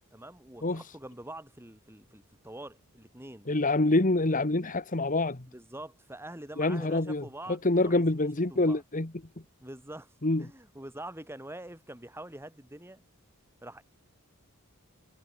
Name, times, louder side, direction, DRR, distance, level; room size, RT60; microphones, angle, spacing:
voice 1, 0.0-3.5 5.5-8.8 9.6-10.1 10.4-13.0 13.6-13.8, right 1 dB, 10° right, 6.7 m, -45 dB
voice 2, 3.5-5.5 6.6-9.1 10.2-10.5, left 2 dB, 35° left, 1.5 m, -26 dB
head